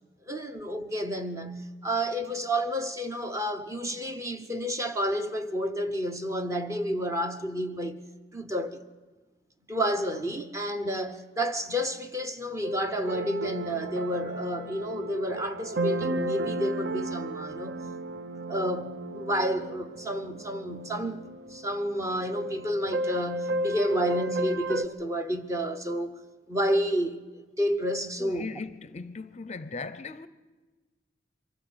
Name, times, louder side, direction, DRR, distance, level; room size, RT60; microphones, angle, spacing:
voice 1, 0.3-8.0 8.3-8.8 9.7-17.8 18.5-26.2 26.5-28.5, equal, 15° right, 1.0 m, -30 dB
sound 1, 12.6-24.9, right 1 dB, 65° right, 0.6 m, -34 dB
voice 2, 28.2-30.3, left 4 dB, 40° left, 0.6 m, -38 dB
23.5 x 15.0 x 7.9 m
head